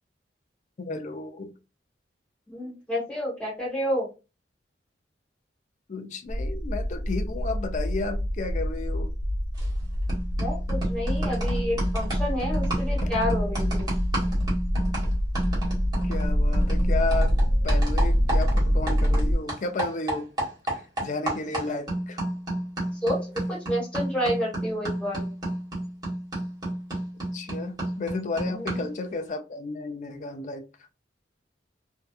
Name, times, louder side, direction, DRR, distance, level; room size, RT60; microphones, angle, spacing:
voice 1, 0.8-1.5 5.9-9.1 13.0-13.1 16.0-17.3 17.6-20.3 20.7-22.2 27.3-30.7, left 3 dB, 40° left, 0.4 m, -33 dB
voice 2, 2.5-4.1 10.4-13.9 21.7-21.8 23.0-23.2 23.5-25.3 28.5-28.8, equal, 5° left, 1.1 m, -29 dB
sound 1, 6.3-19.3, equal, 40° right, 0.6 m, -25 dB
sound 2, 9.6-9.8 10.1-19.2 19.5-29.0, right 1 dB, 20° right, 1.3 m, -32 dB
2.7 x 2.2 x 2.3 m
head